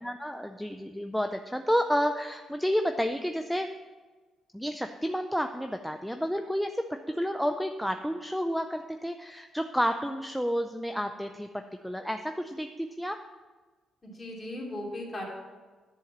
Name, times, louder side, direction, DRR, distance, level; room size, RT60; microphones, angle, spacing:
voice 1, 0.0-3.7 4.5-11.5 11.8-13.2, equal, ahead, 6 dB, 0.4 m, -30 dB
voice 2, 14.0-15.2, left 1 dB, 25° left, -3 dB, 2.7 m, -37 dB
10.5 x 3.8 x 7.3 m, 1.3 s
cardioid pair, 90°, 0 cm